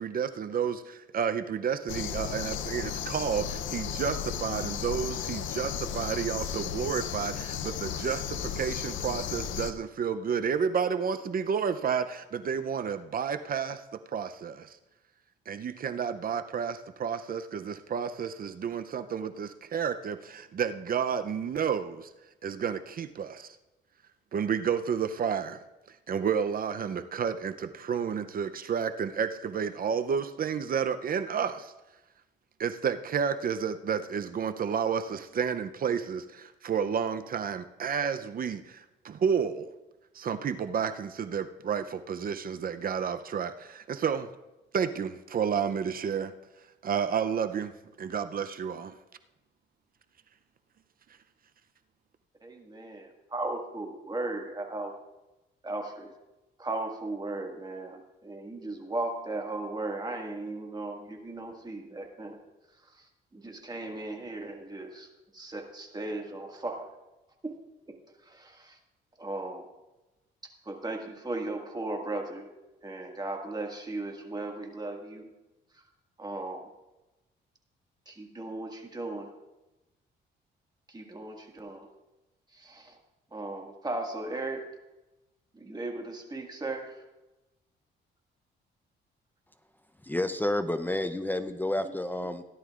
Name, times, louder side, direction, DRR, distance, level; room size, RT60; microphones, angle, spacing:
voice 1, 0.0-13.8 14.1-14.8 15.5-22.1 22.4-23.6 24.3-25.6 26.1-31.7 32.6-39.7 40.1-44.3 44.7-46.3 46.8-47.7 48.0-48.9, right 7 dB, 45° right, 10 dB, 0.6 m, -31 dB
sound 1, 1.9-9.7, left 9 dB, 75° left, 0.7 m, -34 dB
voice 2, 52.4-55.0 55.6-56.1 56.6-62.4 62.8-63.1 63.3-66.9 67.4-67.6 67.9-68.0 68.2-68.8 69.2-69.7 70.6-72.5 72.8-75.3 75.7-75.8 76.2-76.7 78.1-79.3 80.9-81.9 82.5-83.0 83.3-84.6 85.5-87.0 91.8-91.9, right 2 dB, 20° right, 2 dB, 1.9 m, -37 dB
voice 3, 90.0-92.4, left 1 dB, 10° left, 10 dB, 0.6 m, -30 dB
17.0 x 11.0 x 2.5 m, 1.0 s
cardioid pair, 90°, 20 cm